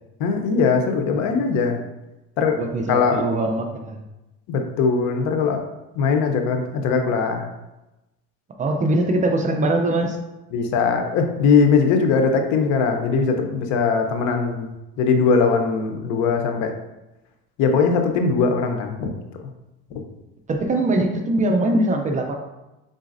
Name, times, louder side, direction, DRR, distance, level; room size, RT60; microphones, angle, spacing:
voice 1, 0.2-1.8 2.4-2.6 2.9-3.2 4.5-5.6 6.0-7.5 10.5-16.7 17.6-19.1, left 5 dB, 65° left, 5 dB, 0.7 m, -20 dB
voice 2, 2.6-4.0 8.6-10.2 20.5-22.4, right 1 dB, 25° right, 4 dB, 0.4 m, -22 dB
3.9 x 3.8 x 2.5 m, 0.98 s
supercardioid pair, 115°, 31 cm